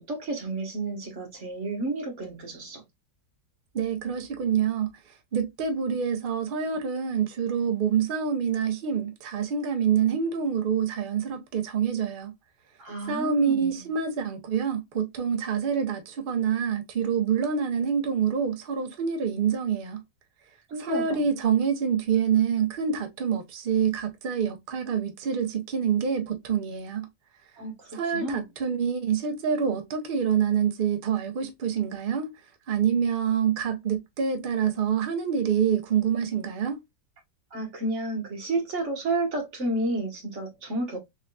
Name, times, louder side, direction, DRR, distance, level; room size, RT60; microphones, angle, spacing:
voice 1, 0.0-2.8 12.8-13.9 20.7-21.3 27.6-28.4 37.5-41.0, right 2 dB, 45° right, 1.4 m, -31 dB
voice 2, 3.7-4.9 5.3-12.3 13.1-20.0 20.8-27.1 27.9-32.3 32.7-36.8, right 7 dB, 80° right, 0.4 m, -26 dB
3.5 x 3.4 x 2.2 m
omnidirectional pair, 1.9 m